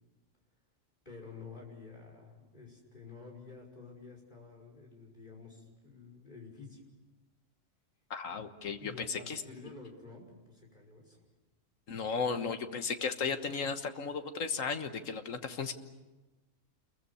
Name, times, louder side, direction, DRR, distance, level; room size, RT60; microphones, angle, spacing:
voice 1, 1.1-6.8 8.8-11.2, left 4 dB, 35° left, 0 dB, 5.8 m, -50 dB
voice 2, 8.1-9.4 11.9-15.7, left 5 dB, 80° left, 8 dB, 1.7 m, -35 dB
28.5 x 22.5 x 7.1 m, 1.1 s
omnidirectional pair, 1.4 m